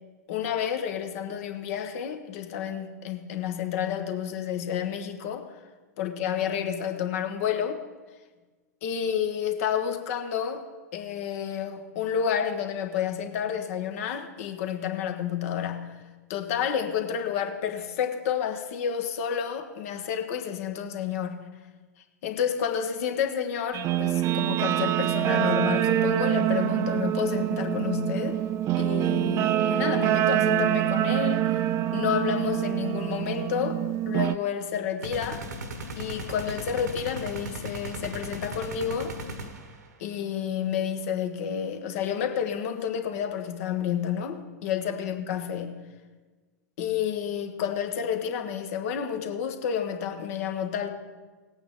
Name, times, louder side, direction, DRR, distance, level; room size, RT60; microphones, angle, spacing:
voice 1, 0.3-5.5 6.0-7.8 8.8-10.6 10.9-15.9 16.3-21.4 22.2-28.4 28.8-31.6 31.9-35.5 36.0-39.2 40.0-45.8 46.8-50.9, left 8 dB, 55° left, 5 dB, 1.3 m, -30 dB
Guitar, 23.7-34.3, right 13 dB, 30° right, 0.4 m, -25 dB
sound 1, 35.0-39.9, right 1 dB, 75° right, 1.3 m, -37 dB
18.5 x 8.7 x 3.7 m, 1.3 s
figure-of-eight pair, 95°, 9 cm